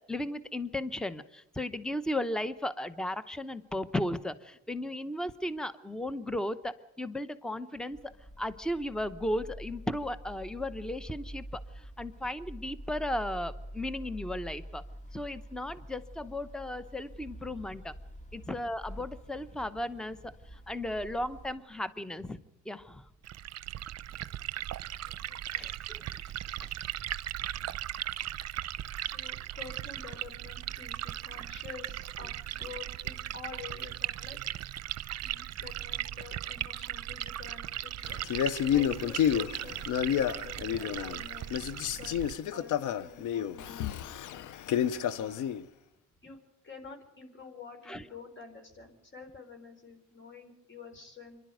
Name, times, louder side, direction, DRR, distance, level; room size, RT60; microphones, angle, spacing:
voice 1, 0.1-8.0 8.4-14.8 15.1-17.9 18.3-22.4 22.7-23.0 25.5-26.3 47.9-48.0, left 1 dB, ahead, 13 dB, 0.9 m, -35 dB
sound 1, 7.9-21.6, equal, 25° left, 1.8 m, -47 dB
Liquid, 23.2-42.3, right 12 dB, 60° right, 0.7 m, -38 dB
voice 2, 24.1-24.5 25.0-25.7 25.9-26.1 26.4-27.0 28.5-28.6 29.0-34.4 34.7-34.8 35.2-41.5 41.9-42.2 42.5-44.1 45.0-45.4 46.2-46.4 46.6-51.4, left 5 dB, 40° left, 6 dB, 4.4 m, -49 dB
Male speech man speaking, 38.2-41.2 41.5-45.6, left 9 dB, 80° left, 0.9 m, -30 dB
25.5 x 11.5 x 9.2 m, 0.91 s
cardioid pair, 90°, 30 cm